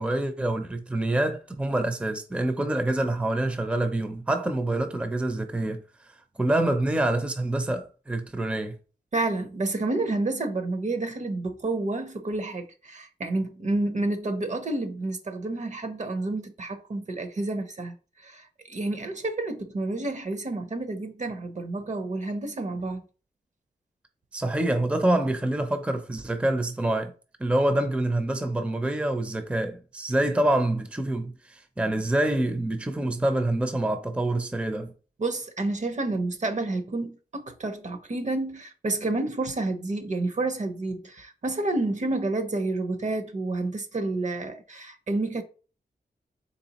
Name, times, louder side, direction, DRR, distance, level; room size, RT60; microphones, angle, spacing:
voice 1, 0.0-5.8 6.4-8.8 24.3-27.1 27.4-34.9, right 1 dB, 5° right, 0.5 m, -26 dB
voice 2, 9.1-17.9 18.2-23.0 35.2-45.4, right 2 dB, 45° right, 0.7 m, -29 dB
4.1 x 3.3 x 2.9 m
wide cardioid pair, 80°, 17 cm